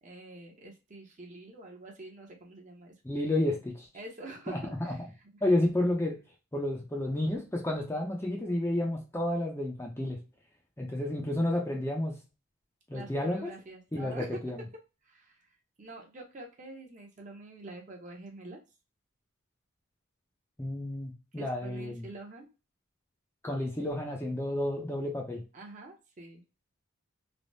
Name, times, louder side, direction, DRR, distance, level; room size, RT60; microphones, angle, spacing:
voice 1, 0.0-3.4 3.9-5.0 5.3-5.4 12.9-14.4 15.0-15.5 15.8-18.6 21.4-22.5 25.5-26.4, right 2 dB, 35° right, 1 dB, 0.7 m, -46 dB
voice 2, 3.0-3.9 4.5-4.9 5.4-6.2 6.5-10.2 10.8-12.2 12.9-13.5 13.9-14.6 20.6-22.0 23.4-25.4, left 1 dB, 10° left, 0 dB, 0.5 m, -31 dB
3.3 x 2.0 x 2.5 m, 0.30 s
head